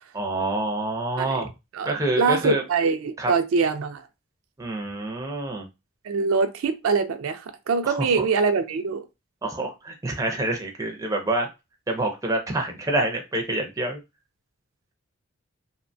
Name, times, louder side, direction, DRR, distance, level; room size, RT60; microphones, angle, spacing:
voice 1, 0.1-1.5 1.8-2.6 3.2-3.3 4.6-5.7 7.8-8.1 9.4-11.5 11.9-14.0, right 1 dB, 15° right, 0.4 m, -27 dB
voice 2, 1.7-4.0 6.1-9.0, right 5 dB, 75° right, 0.4 m, -24 dB
2.8 x 2.1 x 2.6 m
head